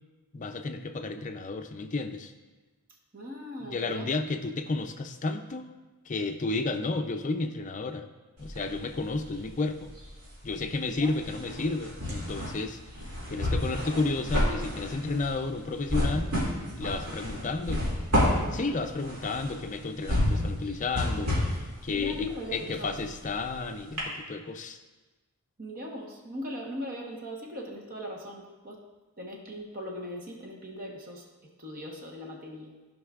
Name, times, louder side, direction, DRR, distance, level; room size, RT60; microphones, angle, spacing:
voice 1, 0.3-2.3 3.6-5.7 6.1-8.0 8.4-9.9 10.4-12.8 13.3-16.3 16.8-17.9 18.3-24.8, left 3 dB, 35° left, 7 dB, 0.5 m, -32 dB
voice 2, 3.1-4.1 10.9-11.2 21.9-23.2 25.6-28.8 29.2-32.7, equal, 40° right, 0 dB, 1.1 m, -39 dB
sound 1, 8.4-9.5 9.8-23.6 24.0-24.1, left 1 dB, 85° right, 2.5 m, -30 dB
14.5 x 5.3 x 2.4 m, 1.2 s
head